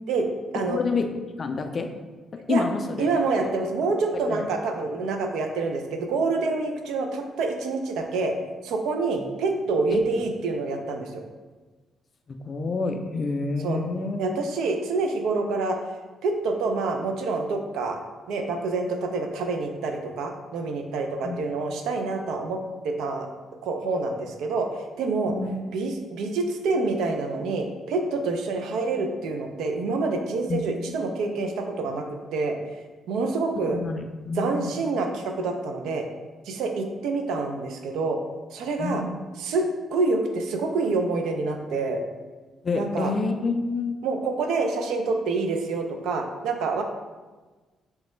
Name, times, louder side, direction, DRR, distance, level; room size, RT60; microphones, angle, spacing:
voice 1, 0.6-1.1 1.4-1.9 2.5-2.8 4.3-4.4 9.9-10.0 12.3-14.2 21.2-21.5 25.3-25.6 30.5-30.6 33.7-34.7 38.8-39.2 42.6-44.0, left 4 dB, 40° left, 6 dB, 0.3 m, -28 dB
voice 2, 3.0-8.4 8.6-11.2 13.6-13.8 14.2-15.8 16.2-18.0 18.3-22.6 22.8-23.3 23.6-24.7 25.0-25.3 25.7-32.1 32.3-32.6 33.1-33.8 34.4-36.0 36.5-38.2 38.5-39.0 39.4-42.0 42.7-43.1 44.0-46.8, right 3 dB, 85° right, 4 dB, 0.3 m, -27 dB
3.2 x 2.1 x 3.0 m, 1.3 s
cardioid pair, 90°, 0 cm